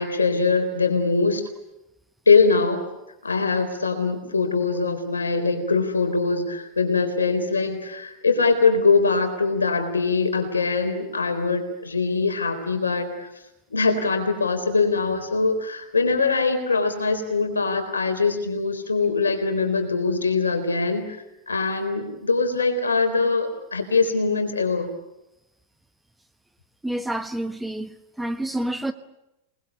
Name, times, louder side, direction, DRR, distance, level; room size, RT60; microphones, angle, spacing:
voice 1, 0.0-1.4 2.3-2.9 3.2-13.3 13.7-24.9, left 4 dB, 75° left, 3.9 m, -22 dB
voice 2, 26.8-28.9, right 1 dB, 5° right, 1.1 m, -28 dB
28.0 x 20.0 x 8.5 m
figure-of-eight pair, 90°, 0 cm